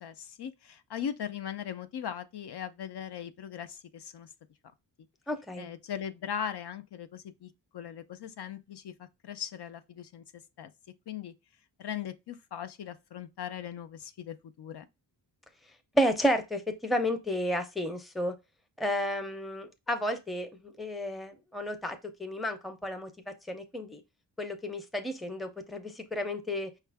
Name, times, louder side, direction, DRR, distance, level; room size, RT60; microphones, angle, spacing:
voice 1, 0.0-4.3 5.6-10.2 10.6-10.7 11.1-11.3 11.8-14.9, left 9 dB, 65° left, 0.6 m, -39 dB
voice 2, 5.3-5.7 15.9-18.3 18.8-23.1 23.5-24.0 24.4-26.7, equal, ahead, 0.5 m, -31 dB
5.4 x 2.4 x 3.4 m
wide cardioid pair, 140°, 44 cm